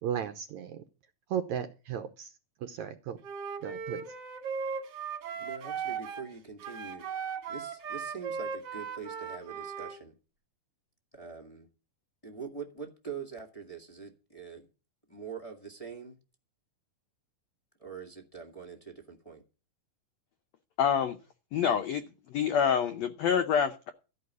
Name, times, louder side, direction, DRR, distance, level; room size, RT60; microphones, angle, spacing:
voice 1, 0.0-0.8 1.3-2.3 2.6-3.2 3.6-4.0, right 9 dB, 75° right, 7 dB, 1.8 m, -35 dB
Wind instrument woodwind instrument, 3.2-6.3 6.6-10.0, right 6 dB, 50° right, 2.2 m, -37 dB
voice 2, 5.4-7.0 7.5-10.1 11.1-11.7 12.2-14.7 15.1-16.1 17.8-19.4, right 6 dB, 20° left, 0 dB, 1.0 m, -44 dB
voice 3, 20.8-21.2 21.5-22.0 22.3-23.9, left 7 dB, 80° left, 8 dB, 1.5 m, -26 dB
13.5 x 5.5 x 9.5 m, 0.33 s
omnidirectional pair, 4.2 m